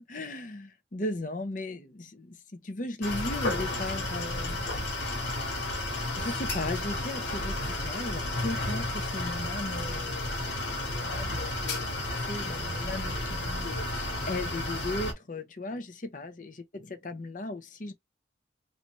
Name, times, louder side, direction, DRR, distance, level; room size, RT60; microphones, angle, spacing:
voice 1, 0.0-4.9 6.1-10.6 10.9-16.5 17.0-17.9, left 2 dB, 45° left, 0.7 m, -37 dB
sound 1, 3.0-15.1, left 2 dB, 70° left, 1.5 m, -32 dB
3.3 x 2.6 x 3.0 m
head